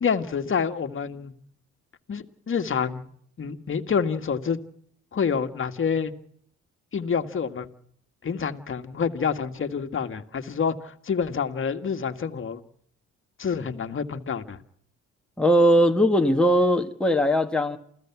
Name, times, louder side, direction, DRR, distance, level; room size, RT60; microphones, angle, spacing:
voice 1, 0.0-1.3 2.1-3.1 3.4-4.6 5.1-6.1 6.9-7.7 8.2-12.6 13.4-14.6, left 6 dB, 45° left, 1.9 m, -27 dB
voice 2, 15.4-17.8, equal, 5° left, 1.8 m, -20 dB
28.5 x 16.0 x 6.1 m
cardioid pair, 90°, 30 cm